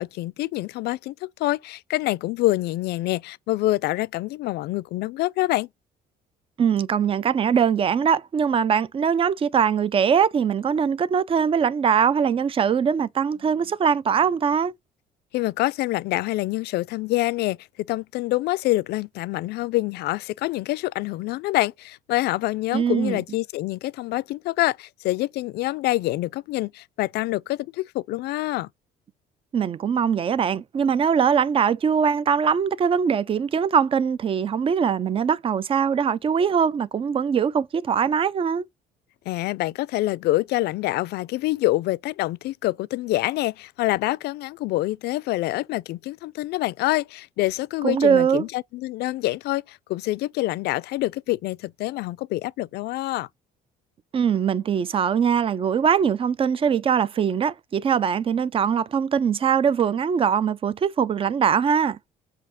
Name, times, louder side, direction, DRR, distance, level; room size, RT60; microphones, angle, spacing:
voice 1, 0.0-5.7 15.3-28.7 39.3-53.3, left 18 dB, 75° left, 0.4 m, -26 dB
voice 2, 6.6-14.7 22.7-23.2 29.5-38.6 47.8-48.4 54.1-62.0, right 7 dB, 35° right, 0.5 m, -22 dB
7.5 x 2.8 x 5.6 m
cardioid pair, 110°, 17 cm